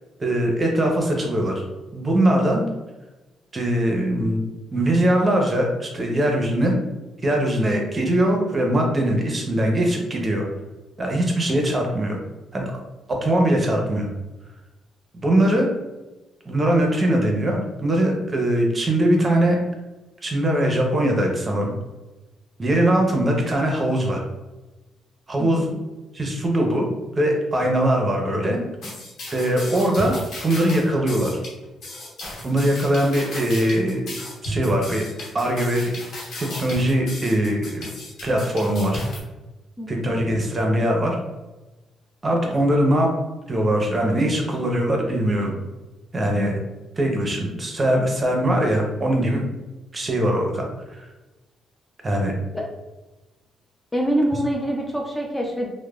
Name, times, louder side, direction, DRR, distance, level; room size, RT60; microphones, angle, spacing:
voice 1, 0.2-1.6 1.9-2.6 3.5-4.4 4.7-6.8 7.2-10.4 11.0-12.2 12.5-12.7 13.1-14.1 15.1-15.7 16.5-19.6 20.2-21.7 22.6-24.2 25.3-25.7 26.1-26.9 27.1-28.6 29.3-30.2 30.4-31.4 32.4-34.1 34.4-35.0 35.3-35.9 36.4-37.9 38.2-39.0 39.9-41.2 42.2-43.1 43.5-45.5 46.1-46.5 47.0-49.5 49.9-50.7 50.9-51.1 52.0-52.3, right 1 dB, 30° right, 1 dB, 0.6 m, -21 dB
voice 2, 25.4-25.8 39.8-40.1 52.5-52.6 53.9-55.7, right 1 dB, 10° left, 0 dB, 0.4 m, -25 dB
sound 1, 28.8-39.2, equal, 60° left, 1.0 m, -34 dB
3.0 x 2.1 x 2.3 m, 1.1 s
cardioid pair, 90°, 0 cm